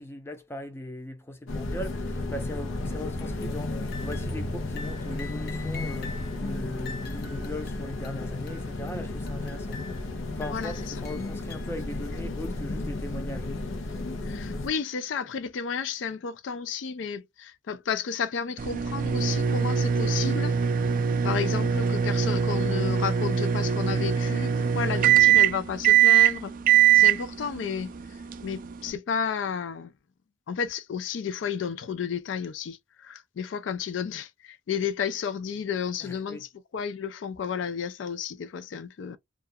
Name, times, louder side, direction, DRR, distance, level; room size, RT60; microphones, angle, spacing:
voice 1, 0.0-9.8 10.3-13.5 36.0-36.5, left 1 dB, 15° left, 0.5 m, -39 dB
sound 1, 1.5-14.7, left 2 dB, 85° left, 0.7 m, -33 dB
sound 2, 3.2-3.6 3.9-4.5 4.8-6.4 6.8-8.9 9.3-10.2 10.4-11.8, left 5 dB, 55° left, 0.8 m, -45 dB
voice 2, 10.5-10.9 14.3-20.5 21.2-26.5 26.9-27.9 28.4-29.9 30.5-39.2, left 6 dB, 70° left, 0.4 m, -32 dB
sound 3, 18.6-28.9, right 9 dB, 45° right, 0.3 m, -22 dB
2.4 x 2.3 x 2.5 m
head